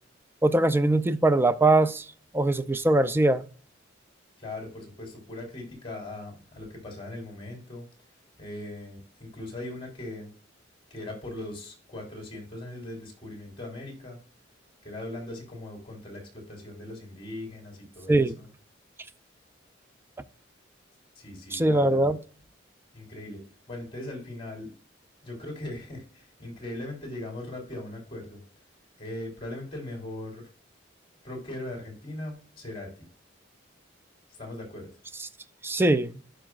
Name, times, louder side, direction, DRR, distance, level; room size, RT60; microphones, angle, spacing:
voice 1, 0.4-2.1 2.3-3.4 18.1-18.3 21.5-22.2 35.6-36.2, right 2 dB, 10° right, 0.4 m, -22 dB
voice 2, 4.4-7.8 8.4-10.3 10.9-14.2 14.8-18.5 21.1-22.1 22.9-23.4 23.7-24.7 25.2-28.4 29.0-30.5 31.2-32.9 34.3-34.9, left 1 dB, 25° left, 3.3 m, -39 dB
12.5 x 5.0 x 2.4 m
head